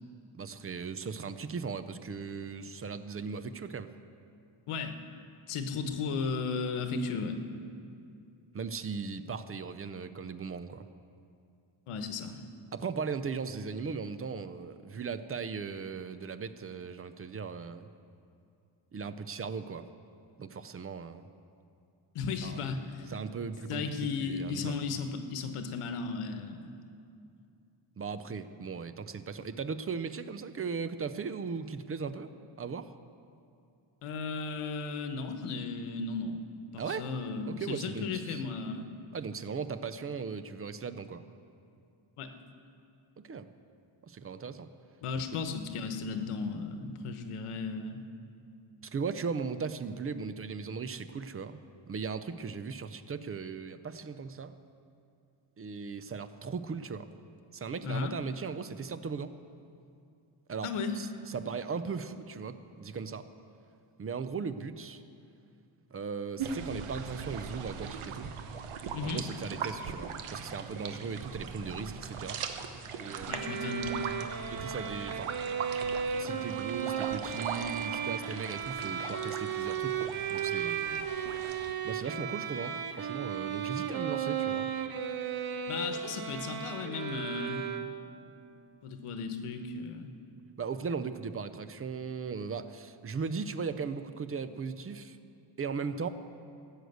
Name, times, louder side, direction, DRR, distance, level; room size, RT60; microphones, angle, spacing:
voice 1, 0.3-3.9 8.5-10.8 12.7-17.9 18.9-19.9 20.4-21.3 22.4-22.6 23.1-23.9 24.2-24.8 28.0-32.3 32.6-32.9 36.8-37.1 37.4-38.4 39.1-41.2 43.2-43.5 44.0-44.7 48.8-51.6 51.9-54.5 55.6-57.1 57.5-59.3 60.5-60.7 61.0-63.3 64.0-65.0 65.9-68.3 69.0-72.4 72.9-73.5 74.5-75.4 76.2-81.1 81.8-84.7 90.6-95.2 95.6-96.1, right 5 dB, 30° right, 12 dB, 0.4 m, -38 dB
voice 2, 4.7-5.0 5.5-7.4 11.9-12.4 22.1-23.1 23.7-26.7 34.0-36.4 36.7-38.9 42.2-42.3 45.0-48.0 57.8-58.1 60.6-61.0 68.9-69.2 73.3-74.0 85.7-87.7 88.8-90.1, left 4 dB, 90° left, 7 dB, 1.1 m, -35 dB
sound 1, 66.4-81.7, right 6 dB, 80° right, 1.0 m, -40 dB
sound 2, 73.3-88.2, right 8 dB, 45° right, 0.8 m, -35 dB
16.0 x 6.5 x 8.0 m, 2.5 s
cardioid pair, 130°, 50 cm